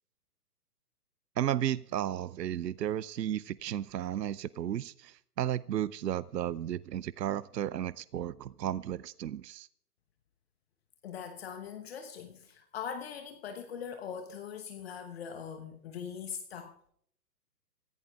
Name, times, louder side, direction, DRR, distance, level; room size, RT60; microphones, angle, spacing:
voice 1, 1.4-9.7, right 11 dB, 80° right, 0.5 m, -33 dB
voice 2, 11.0-16.7, left 7 dB, 40° left, 1.1 m, -41 dB
26.0 x 16.0 x 2.4 m
figure-of-eight pair, 125°, 49 cm